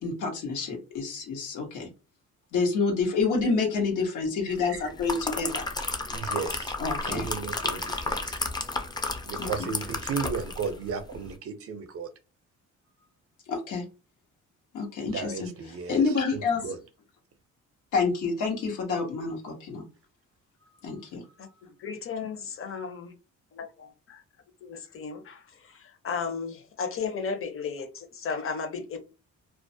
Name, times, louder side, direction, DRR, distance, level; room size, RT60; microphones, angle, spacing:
voice 1, 0.0-1.9 2.5-5.7 6.8-7.3 9.4-9.5 13.5-13.8 14.7-15.5 15.9-16.6 17.9-19.8 20.8-21.2, left 4 dB, 85° left, 1 dB, 1.0 m, -28 dB
sound 1, 4.7-10.8 11.1-11.3, left 3 dB, 15° left, 0.4 m, -32 dB
voice 2, 6.1-6.8 7.1-8.4 9.2-12.1 15.0-16.0 16.3-16.8, right 5 dB, 50° right, 9 dB, 0.5 m, -35 dB
voice 3, 21.8-23.1 24.1-24.2 24.6-25.4 26.0-29.0, left 5 dB, 45° left, 6 dB, 0.7 m, -34 dB
2.3 x 2.0 x 2.6 m, 0.30 s
cardioid pair, 90°, 30 cm